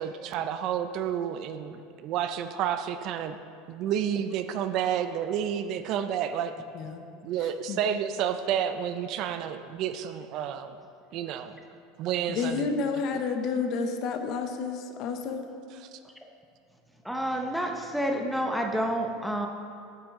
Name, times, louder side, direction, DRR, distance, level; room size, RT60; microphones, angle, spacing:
voice 1, 0.0-3.4 3.7-6.5 7.2-10.8 11.1-11.6 12.0-12.7 13.1-13.2 15.8-16.0, right 9 dB, 45° right, 9 dB, 0.4 m, -30 dB
voice 2, 6.7-7.1 7.7-7.8 12.3-15.5, left 5 dB, 45° left, 6 dB, 0.6 m, -30 dB
voice 3, 17.0-19.5, equal, ahead, 2 dB, 0.6 m, -29 dB
8.6 x 6.9 x 3.6 m, 2.4 s
supercardioid pair, 145°, 0 cm